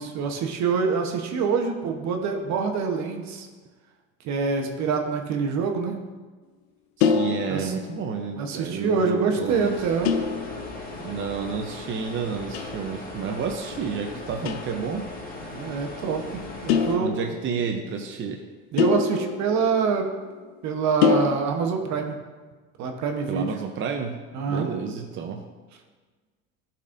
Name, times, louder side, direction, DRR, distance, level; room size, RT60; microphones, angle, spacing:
voice 1, 0.0-3.5 4.2-6.0 7.5-7.7 8.4-10.1 15.5-17.1 18.7-20.1 20.6-22.2 22.8-23.5 24.3-24.7, right 5 dB, 60° right, 4 dB, 1.0 m, -26 dB
sound 1, 7.0-8.3 10.0-11.2 12.5-13.0 14.4-14.9 16.7-17.8 18.8-20.4 21.0-21.3, left 6 dB, 90° left, 0.5 m, -25 dB
voice 2, 7.0-9.8 11.0-15.1 17.0-18.4 23.3-24.2 24.5-25.4, right 6 dB, 40° right, 3 dB, 0.7 m, -30 dB
sound 2, 9.5-17.0, left 2 dB, 25° left, 1.6 m, -38 dB
11.5 x 4.3 x 2.6 m, 1.4 s
hypercardioid pair, 75°, 32 cm